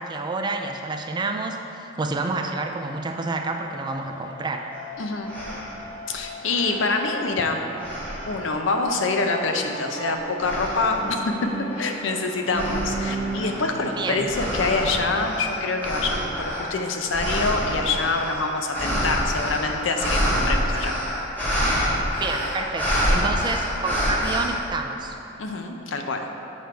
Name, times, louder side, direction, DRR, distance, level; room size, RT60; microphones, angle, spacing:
voice 1, 0.0-4.7 14.0-14.3 22.1-25.2, right 3 dB, 25° right, 4 dB, 0.3 m, -29 dB
sound 1, 2.7-15.5, left 1 dB, 85° right, 1.3 m, -43 dB
sound 2, 4.7-4.8 5.3-5.8 6.4-7.4 7.8-8.6 9.2-9.7 10.4-11.1 11.7-24.5, equal, 10° left, 1.5 m, -27 dB
voice 2, 5.0-5.3 6.1-7.7 8.2-11.3 11.8-21.0 25.4-26.3, left 3 dB, 70° left, 4 dB, 0.6 m, -26 dB
Bowed string instrument, 9.1-15.2, right 3 dB, 65° right, 0.7 m, -35 dB
7.2 x 4.5 x 4.6 m, 2.9 s
head